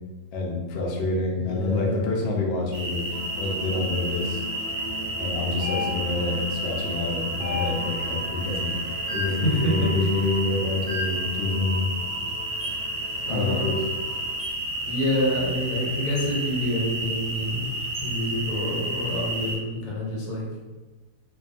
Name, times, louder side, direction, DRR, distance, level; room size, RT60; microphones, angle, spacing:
voice 1, 0.3-3.1 3.4-4.4 5.2-8.8 9.1-11.9 13.3-13.8, left 2 dB, 85° left, -1 dB, 0.5 m, -27 dB
voice 2, 1.3-2.1 9.3-9.9 13.3-13.7 14.8-17.6 18.0-20.4, left 1 dB, 65° left, -4 dB, 1.0 m, -27 dB
sound 1, 2.7-19.6, right 1 dB, 50° right, 0.6 m, -31 dB
sound 2, 3.1-14.4, left 2 dB, 30° left, 0.6 m, -40 dB
sound 3, 5.6-6.3 7.4-8.1 9.1-9.5 10.9-11.3 12.6-12.9 14.4-14.7 16.1-16.3 17.9-18.1, left 5 dB, 15° right, 1.0 m, -34 dB
2.6 x 2.2 x 2.5 m, 1.2 s
omnidirectional pair, 1.7 m